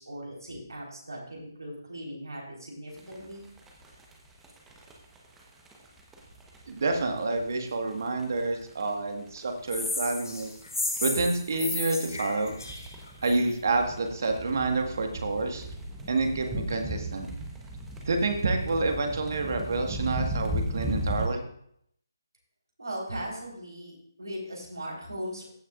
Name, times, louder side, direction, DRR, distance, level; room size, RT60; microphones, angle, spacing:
voice 1, 0.0-3.5 22.8-25.5, equal, 75° right, -2 dB, 4.2 m, -38 dB
sound 1, 3.0-21.3, equal, 10° right, 1.1 m, -37 dB
voice 2, 6.7-10.5 11.0-12.5 13.2-15.7 16.1-17.3 18.0-21.4, right 3 dB, 50° right, 4 dB, 1.6 m, -28 dB
sound 2, 9.7-13.5, left 2 dB, 70° left, 3.1 m, -33 dB
15.0 x 7.4 x 2.5 m, 0.68 s
figure-of-eight pair, 150°, 2 cm